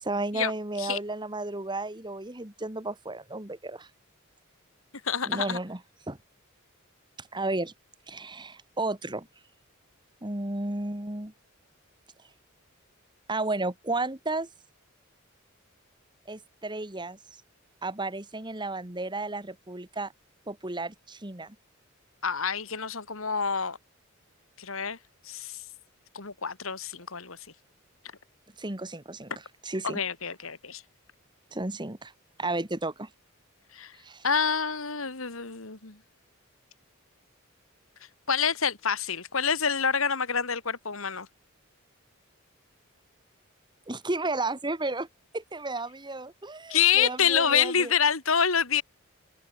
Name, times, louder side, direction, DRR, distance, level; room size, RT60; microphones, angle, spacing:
voice 1, 0.0-3.9 5.3-5.8 6.1-6.2 7.2-7.7 8.1-9.3 10.2-11.3 13.3-14.5 16.3-17.2 17.8-20.1 20.5-21.6 28.6-29.3 29.6-30.0 31.5-32.1 32.4-33.1 34.0-34.2 43.9-45.1 45.3-47.9, right 2 dB, 20° right, 2.0 m, -33 dB
voice 2, 5.0-5.6 22.2-23.8 24.6-25.0 25.3-25.6 26.1-27.4 29.8-30.8 33.7-33.9 34.2-36.0 38.3-41.3 46.7-48.8, left 7 dB, 75° left, 2.5 m, -27 dB
head